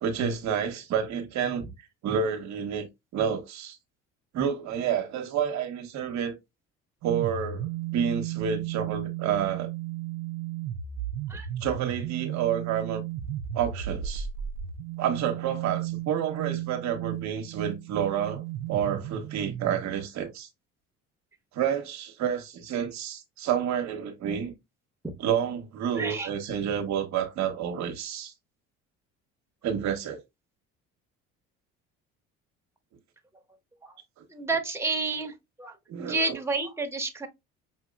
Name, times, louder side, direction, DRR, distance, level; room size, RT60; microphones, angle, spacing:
voice 1, 0.0-1.7 2.0-2.9 3.1-3.8 4.3-6.4 7.0-7.7 7.9-9.7 11.6-13.0 13.5-14.3 15.0-20.5 21.5-24.5 25.2-28.3 29.6-30.2 35.9-36.4, right 8 dB, 60° right, 1.0 m, -29 dB
sound 1, 7.0-19.9, right 11 dB, 85° right, 0.6 m, -34 dB
voice 2, 26.0-26.3 33.8-33.9 34.3-35.3 35.6-37.3, right 3 dB, 10° right, 1.1 m, -30 dB
5.7 x 2.8 x 2.3 m
supercardioid pair, 85°, 31 cm